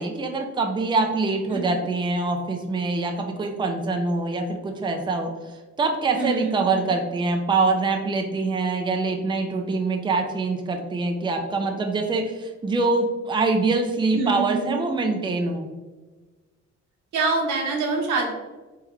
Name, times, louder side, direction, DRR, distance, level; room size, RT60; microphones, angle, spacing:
voice 1, 0.0-15.7, right 3 dB, 15° right, 3 dB, 0.5 m, -24 dB
voice 2, 1.5-1.8 6.2-6.9 14.1-14.8 17.1-18.3, right 3 dB, 80° right, 0 dB, 1.1 m, -26 dB
3.5 x 3.5 x 3.1 m, 1.3 s
cardioid pair, 90°, 30 cm